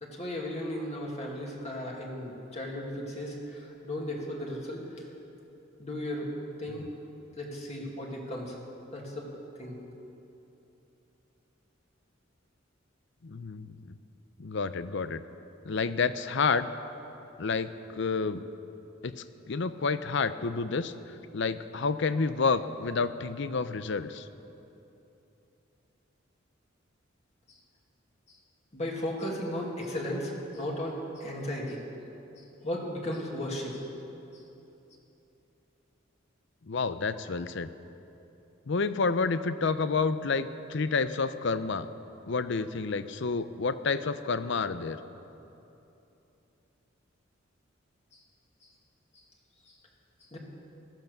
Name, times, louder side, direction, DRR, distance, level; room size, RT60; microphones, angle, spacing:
voice 1, 0.0-5.0 5.8-6.3 6.6-6.9 7.4-8.6 8.9-9.3 9.6-9.8 28.7-31.8 32.6-33.8 50.3-50.4, left 1 dB, 35° left, -2 dB, 2.4 m, -35 dB
voice 2, 13.2-13.9 14.4-15.2 15.6-16.7 17.4-18.4 19.0-20.9 21.3-24.3 36.7-37.7 38.7-41.9 42.3-45.0, left 4 dB, 65° left, 13 dB, 0.6 m, -29 dB
16.0 x 13.0 x 6.7 m, 2.9 s
head